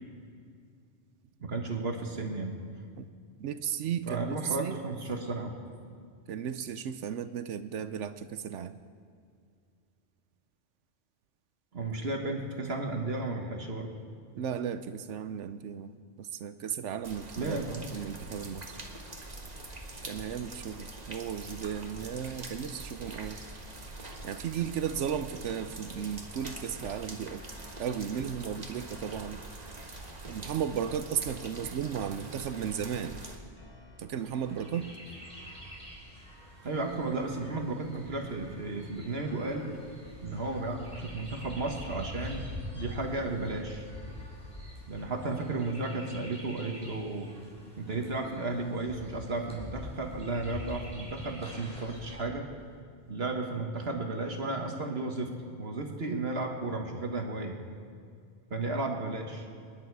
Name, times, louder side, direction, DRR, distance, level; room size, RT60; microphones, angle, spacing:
voice 1, 1.4-2.5 4.1-5.7 11.7-13.9 17.4-17.8 36.6-39.7 40.2-42.5 42.7-43.9 44.9-47.3 47.8-52.5 53.1-57.6 58.5-59.5, right 2 dB, 60° right, 3 dB, 1.6 m, -34 dB
voice 2, 3.4-4.8 6.3-8.8 14.3-17.6 17.9-18.8 20.0-23.4 24.2-27.4 27.8-29.4 30.2-33.2 34.0-34.9, right 8 dB, 85° right, 11 dB, 1.0 m, -35 dB
sound 1, 17.0-33.4, right 2 dB, 35° right, 1.6 m, -44 dB
sound 2, 26.4-27.2 27.6-28.4 28.8-32.0 32.4-33.2 33.6-35.8, left 1 dB, 20° left, 1.4 m, -55 dB
Chirp tweet, 34.2-52.2, left 1 dB, 5° left, 4.3 m, -45 dB
27.0 x 10.5 x 4.7 m, 2.3 s
omnidirectional pair, 1.2 m